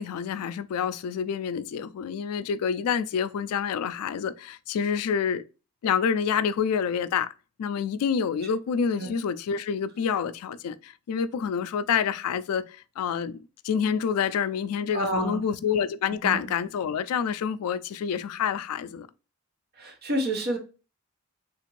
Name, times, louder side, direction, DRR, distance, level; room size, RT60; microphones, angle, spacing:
voice 1, 0.0-5.4 5.8-7.3 7.6-13.4 13.6-19.1, left 7 dB, 80° left, 0.3 m, -27 dB
voice 2, 14.9-15.4 16.2-16.4 19.8-20.6, right 1 dB, 45° right, 0.8 m, -28 dB
3.5 x 2.5 x 3.0 m
head